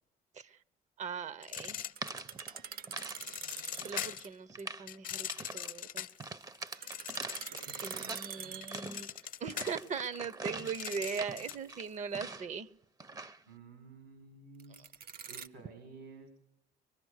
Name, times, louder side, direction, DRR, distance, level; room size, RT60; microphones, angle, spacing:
voice 1, 1.0-1.8 3.8-6.1 7.8-9.1 9.4-12.7, right 6 dB, 45° right, 18 dB, 0.9 m, -40 dB
sound 1, 1.4-2.5 3.0-4.3 4.9-7.8 8.1-11.7, left 10 dB, 55° left, 0.9 m, -42 dB
sound 2, 1.5-3.2 3.5-4.2 4.5-4.9 5.3-5.7 6.2-8.3 8.6-12.6 13.0-13.4, right 3 dB, 20° right, 0.8 m, -44 dB
sound 3, 1.8-4.3 4.6-4.7 6.6-9.3 14.6-15.5, right 7 dB, 60° right, 1.2 m, -45 dB
voice 2, 8.0-8.7 10.5-10.6 13.5-16.3, right 3 dB, 85° right, 5 dB, 5.7 m, -53 dB
24.0 x 21.5 x 6.6 m, 0.75 s
cardioid pair, 110°, 17 cm